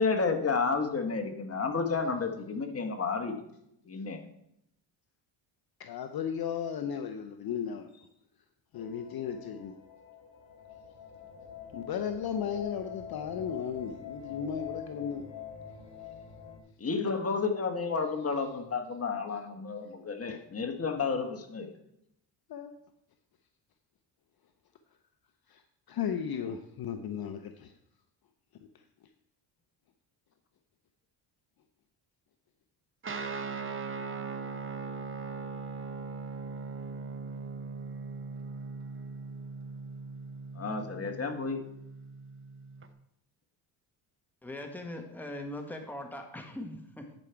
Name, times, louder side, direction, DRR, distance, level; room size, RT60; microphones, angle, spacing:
voice 1, 0.0-3.4 3.9-4.2 16.8-21.7 40.5-41.6, left 4 dB, 30° left, 5 dB, 1.4 m, -31 dB
voice 2, 5.8-8.1 8.7-9.7 11.7-15.2 20.3-20.4 22.5-22.7 25.5-25.6 25.9-27.7, left 8 dB, 50° left, 7 dB, 0.7 m, -35 dB
sound 1, 8.7-16.6, left 8 dB, 70° left, 1.7 m, -45 dB
Guitar, 33.0-42.9, right 4 dB, 25° right, 0.8 m, -40 dB
voice 3, 44.4-47.1, left 1 dB, 5° left, 3 dB, 1.4 m, -40 dB
11.0 x 5.0 x 4.6 m, 0.78 s
cardioid pair, 85°, 49 cm